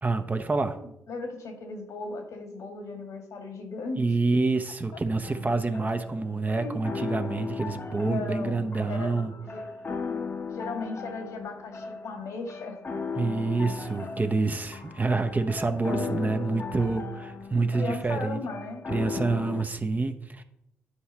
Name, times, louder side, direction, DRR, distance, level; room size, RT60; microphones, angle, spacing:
voice 1, 0.0-0.8 4.0-9.3 13.2-18.4 18.9-20.4, right 3 dB, 30° right, 7 dB, 0.9 m, -27 dB
voice 2, 0.7-4.0 4.9-5.0 6.5-6.8 8.1-9.1 9.4-9.6 10.1-10.2 10.5-12.8 15.7-16.3 17.6-18.9, left 3 dB, 70° left, 4 dB, 1.7 m, -37 dB
sound 1, 5.2-19.6, left 5 dB, 40° left, 1.0 m, -37 dB
9.9 x 4.7 x 4.3 m, 0.82 s
hypercardioid pair, 45°, 6 cm